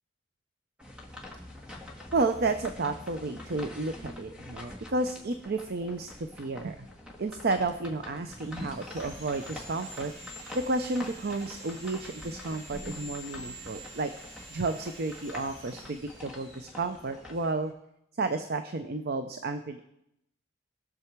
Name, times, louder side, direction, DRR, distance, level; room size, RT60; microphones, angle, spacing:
sound 1, 0.8-17.5, left 1 dB, 5° right, 1.8 m, -45 dB
voice 1, 2.1-6.8 7.2-14.1 14.5-17.7 18.2-19.8, right 3 dB, 55° right, 8 dB, 0.6 m, -32 dB
Sawing, 7.8-17.7, right 1 dB, 75° right, 5.6 m, -48 dB
20.0 x 6.9 x 4.6 m, 0.81 s
head